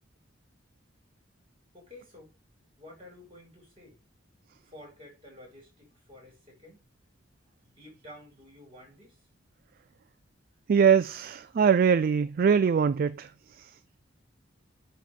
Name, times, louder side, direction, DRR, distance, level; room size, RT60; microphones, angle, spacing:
voice 1, 1.7-2.3 2.8-4.0 4.6-6.8 7.6-9.2, left 1 dB, 30° right, 4.5 m, -51 dB
voice 2, 10.7-13.3, right 6 dB, 50° right, 0.3 m, -22 dB
9.4 x 3.3 x 5.6 m
head